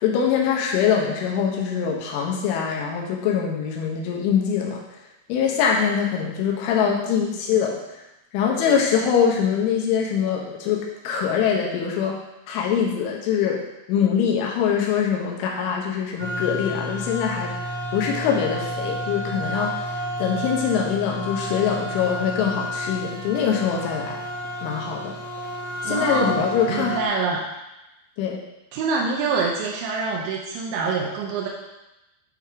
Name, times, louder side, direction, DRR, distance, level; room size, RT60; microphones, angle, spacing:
voice 1, 0.0-4.8 5.3-7.8 8.3-12.2 12.5-13.6 13.9-17.5 17.9-19.8 20.2-24.2 24.6-25.2 25.8-27.0 28.2-28.4, left 7 dB, 80° left, -1 dB, 3.4 m, -23 dB
sound 1, 16.2-27.1, equal, 55° right, 1.8 m, -31 dB
voice 2, 25.9-27.4 28.7-31.5, right 4 dB, 80° right, -3 dB, 2.8 m, -26 dB
8.7 x 3.5 x 5.0 m, 0.95 s
omnidirectional pair, 5.6 m